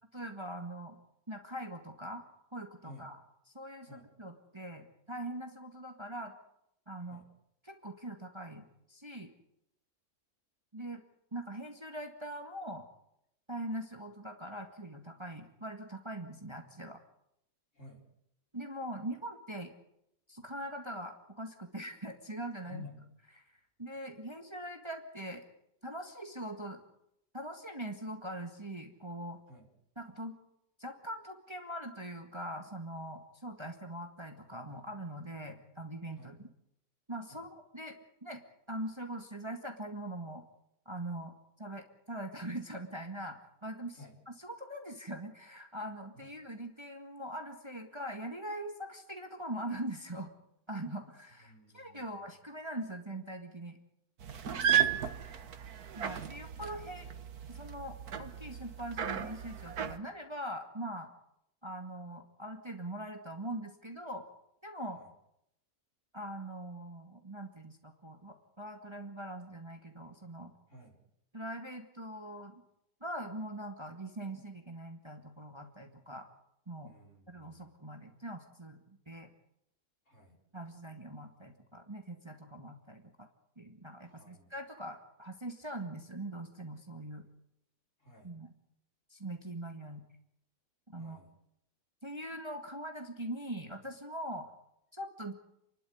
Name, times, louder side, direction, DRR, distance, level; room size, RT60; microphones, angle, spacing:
voice 1, 0.1-1.0 1.3-2.3 2.5-3.2 3.5-6.3 6.9-7.2 7.6-9.3 10.7-11.0 11.3-12.9 13.5-17.0 18.5-19.7 20.3-22.8 23.4-25.5 25.8-26.8 27.3-29.4 30.0-30.4 30.8-36.4 37.1-38.0 38.2-38.4 38.7-40.4 40.9-44.0 44.3-50.3 50.7-53.8 55.9-57.1 57.5-61.1 61.6-64.3 64.6-65.0 66.1-70.5 71.3-72.6 73.0-76.3 76.7-76.9 77.3-79.3 80.5-83.3 83.6-87.3 88.2-88.5 89.1-90.1 90.9-91.2 92.0-94.5 94.9-95.3, right 1 dB, 20° right, 4 dB, 2.0 m, -42 dB
voice 2, 17.7-18.0 22.6-23.0 29.5-29.7 36.2-36.4 37.3-37.5 43.9-44.2 46.1-46.3 51.5-52.2 54.4-55.5 64.9-65.1 70.7-71.0 76.8-77.8 80.1-80.4 84.0-84.5 88.0-88.3 91.0-91.3, left 3 dB, 50° left, 0 dB, 5.4 m, -53 dB
sound 1, 54.2-60.0, right 9 dB, 75° right, 1.8 m, -34 dB
29.0 x 12.0 x 9.6 m, 0.79 s
omnidirectional pair, 1.6 m